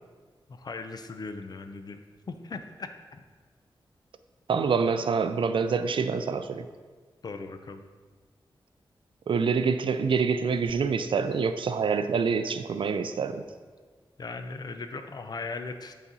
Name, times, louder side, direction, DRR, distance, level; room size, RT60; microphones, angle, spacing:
voice 1, 0.5-2.0 2.3-3.2 7.2-7.8 14.2-15.9, left 3 dB, 50° left, 8 dB, 0.5 m, -38 dB
voice 2, 4.5-6.7 9.3-13.5, right 5 dB, 70° right, 10 dB, 0.4 m, -26 dB
8.5 x 4.1 x 4.0 m, 1.5 s
wide cardioid pair, 150°, 9 cm